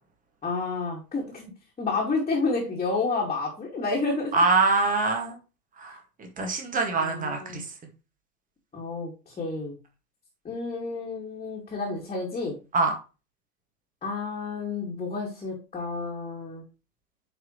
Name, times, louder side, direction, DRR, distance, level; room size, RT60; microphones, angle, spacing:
voice 1, 0.4-1.5 1.8-4.3 7.0-7.6 8.7-9.8 10.4-12.6 14.0-16.6, left 3 dB, 15° left, -4 dB, 2.3 m, -30 dB
voice 2, 4.3-5.4 5.8-7.6 12.7-12.9, right 3 dB, 15° right, 3 dB, 1.9 m, -24 dB
9.5 x 4.8 x 3.1 m, 0.30 s
figure-of-eight pair, 105°, 48 cm